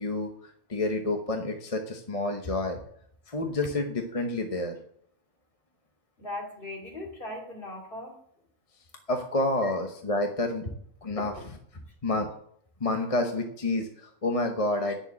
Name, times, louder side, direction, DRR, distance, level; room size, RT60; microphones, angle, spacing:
voice 1, 0.0-2.8 3.3-4.8 9.1-10.6 11.0-11.3 12.0-12.3 12.8-15.0, left 2 dB, 35° left, 4 dB, 1.0 m, -29 dB
voice 2, 6.2-8.2 9.6-9.7 11.2-11.3 14.9-15.0, left 1 dB, 50° left, 0 dB, 2.9 m, -38 dB
9.7 x 7.0 x 8.3 m, 0.67 s
omnidirectional pair, 1.2 m